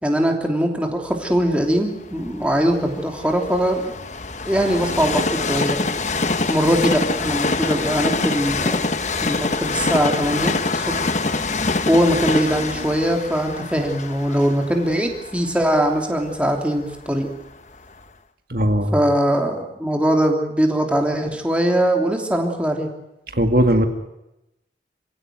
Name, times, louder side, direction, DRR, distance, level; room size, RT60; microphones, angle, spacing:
voice 1, 0.0-3.9 4.5-5.8 6.5-8.9 9.2-11.1 11.9-17.3 18.9-22.9, equal, 5° right, 2 dB, 3.1 m, -21 dB
Train, 1.4-17.3 17.9-18.0, left 3 dB, 40° left, 1.1 m, -25 dB
voice 2, 18.5-18.9 23.3-23.9, right 1 dB, 55° right, 5 dB, 2.1 m, -18 dB
27.5 x 16.5 x 9.5 m, 0.91 s
head